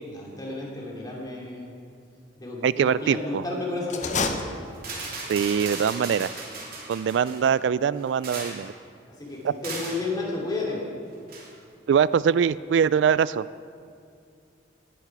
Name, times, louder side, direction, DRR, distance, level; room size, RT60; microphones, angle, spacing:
voice 1, 0.0-1.7 2.4-4.2 9.1-10.8, left 2 dB, 20° left, -3 dB, 2.8 m, -32 dB
voice 2, 2.6-3.4 5.3-6.3 6.9-8.7 9.4-9.5 11.9-13.4, right 7 dB, 75° right, 18 dB, 0.3 m, -23 dB
sound 1, 3.8-5.2, left 3 dB, 40° left, 0.9 m, -29 dB
sound 2, 4.0-4.3 4.8-7.5 8.0-8.7 9.6-10.0 11.3-11.5, right 3 dB, 50° right, 3.0 m, -36 dB
18.5 x 10.5 x 4.7 m, 2.3 s
head